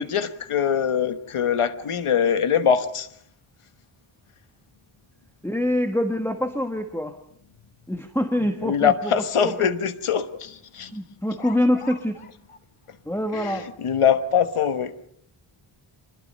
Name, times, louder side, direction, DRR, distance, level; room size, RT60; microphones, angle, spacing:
voice 1, 0.0-3.1 8.6-10.9 11.4-11.5 11.8-11.9 13.3-14.9, left 7 dB, 85° left, 10 dB, 1.3 m, -23 dB
voice 2, 5.4-7.1 7.9-9.7 10.9-12.2 13.1-13.7, left 1 dB, 5° left, 5 dB, 1.3 m, -25 dB
26.0 x 20.0 x 5.4 m, 0.68 s
wide cardioid pair, 110°, 50 cm